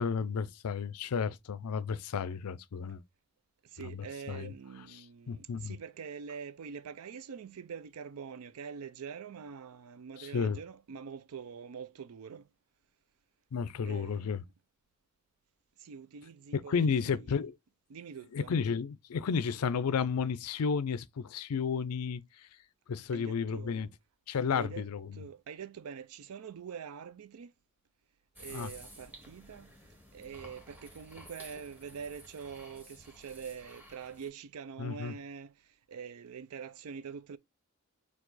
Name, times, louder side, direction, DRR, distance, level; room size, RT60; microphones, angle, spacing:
voice 1, 0.0-3.0 3.8-4.0 4.3-4.5 4.9-5.0 5.3-5.8 10.2-10.6 13.5-14.4 16.5-17.6 18.3-22.2 22.9-23.9 24.3-25.2 28.5-28.7 34.8-35.1, left 6 dB, 85° left, 0.4 m, -32 dB
voice 2, 3.7-12.5 13.8-14.4 15.8-17.4 17.9-18.5 23.1-23.8 24.5-27.5 28.4-29.7 30.1-35.5 35.9-37.4, right 6 dB, 75° right, 0.4 m, -45 dB
sound 1, 28.4-34.3, equal, 10° right, 1.0 m, -53 dB
4.7 x 2.4 x 3.9 m
head